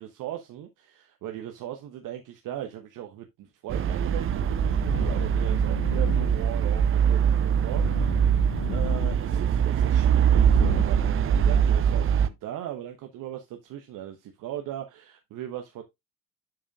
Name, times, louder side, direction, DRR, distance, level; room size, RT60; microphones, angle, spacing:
voice 1, 0.0-15.8, right 11 dB, 50° right, 1.0 m, -38 dB
sound 1, 3.7-12.3, right 8 dB, 30° right, 0.6 m, -23 dB
sound 2, 3.8-10.8, left 8 dB, 55° left, 1.2 m, -37 dB
11.5 x 4.9 x 2.3 m
figure-of-eight pair, 55°, 42 cm